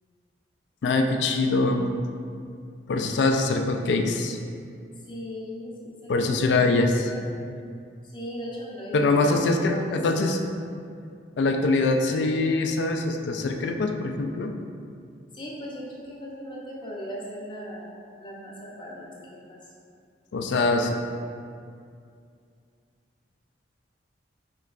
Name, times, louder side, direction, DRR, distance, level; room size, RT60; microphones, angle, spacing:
voice 1, 0.8-1.9 2.9-4.4 6.1-7.1 8.9-10.4 11.4-14.5 20.3-21.0, left 3 dB, 70° left, 4 dB, 0.3 m, -23 dB
voice 2, 5.0-7.2 8.1-9.8 10.1-10.3 15.3-17.9 18.2-19.6, equal, 25° left, -5 dB, 0.6 m, -38 dB
4.4 x 3.0 x 2.4 m, 2.3 s
head